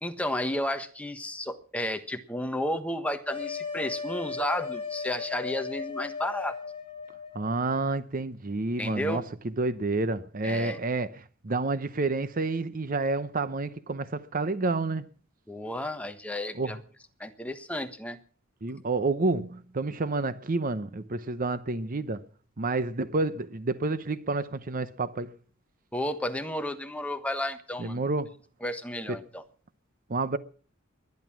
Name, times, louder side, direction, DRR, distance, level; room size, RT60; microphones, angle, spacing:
voice 1, 0.0-6.5 8.8-9.2 10.4-10.8 15.5-16.8 17.2-18.2 25.9-28.0 28.6-29.4, left 1 dB, 5° left, 1.3 m, -32 dB
sound 1, 3.3-7.7, left 5 dB, 25° left, 2.8 m, -36 dB
voice 2, 7.3-15.0 16.5-16.8 18.6-22.2 22.6-25.3 27.8-28.4 29.1-29.2 30.1-30.4, right 3 dB, 40° right, 0.7 m, -29 dB
20.5 x 11.0 x 6.0 m
head